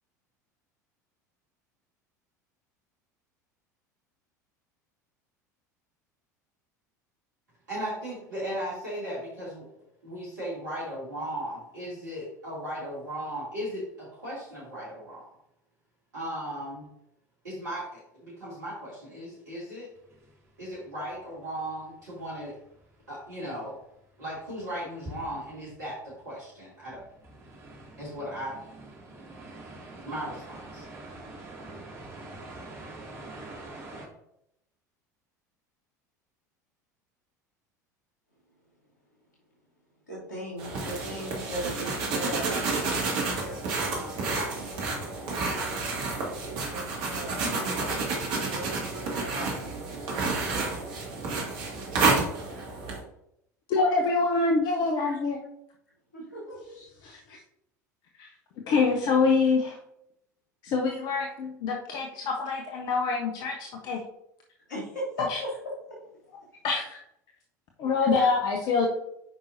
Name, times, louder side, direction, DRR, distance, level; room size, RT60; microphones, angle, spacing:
voice 1, 7.7-9.7 10.0-15.2 16.1-16.9 17.4-19.9 20.6-22.6 23.1-23.7 24.2-27.0 28.0-28.5 30.1-30.8, equal, 75° right, -8 dB, 2.7 m, -36 dB
sound 1, 19.9-21.9 22.2-23.7 24.0-24.1 24.3-34.1, right 2 dB, 30° right, 2.2 m, -45 dB
voice 2, 40.1-44.4 45.2-48.0 48.5-50.2 54.9-55.2 56.1-56.9 64.7-66.0 68.0-68.3, equal, 80° left, -7 dB, 2.7 m, -39 dB
sound 2, 40.6-53.0, right 3 dB, 50° right, 2.0 m, -30 dB
voice 3, 53.7-55.4 57.0-57.4 58.2-58.3 58.7-59.8 60.6-64.0 65.2-65.4 66.6-67.0 67.8-68.9, left 4 dB, 45° left, 1 dB, 0.9 m, -25 dB
8.7 x 5.4 x 2.6 m, 0.78 s
figure-of-eight pair, 75°, 10 cm